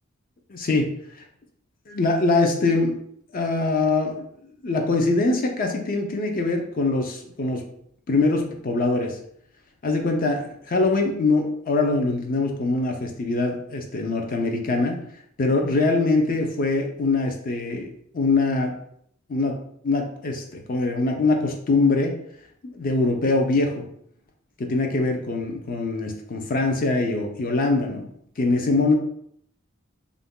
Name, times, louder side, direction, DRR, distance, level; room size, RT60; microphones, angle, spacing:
voice 1, 0.5-0.9 1.9-3.0 3.3-4.2 4.6-7.6 8.1-9.2 9.8-15.0 15.4-18.7 19.3-19.6 19.8-22.2 22.6-23.8 24.6-28.1 28.4-28.9, left 3 dB, 45° left, 3 dB, 0.5 m, -23 dB
2.5 x 2.2 x 3.6 m, 0.68 s
head